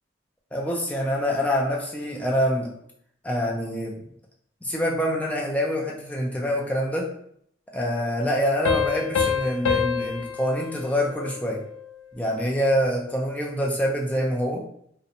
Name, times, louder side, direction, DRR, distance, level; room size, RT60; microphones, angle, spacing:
voice 1, 0.5-2.7 3.2-4.0 4.6-7.1 7.7-11.6 12.1-14.6, equal, 5° left, -2 dB, 0.3 m, -25 dB
sound 1, 8.6-11.9, left 6 dB, 85° left, 0.3 m, -27 dB
2.7 x 2.0 x 2.5 m, 0.69 s
head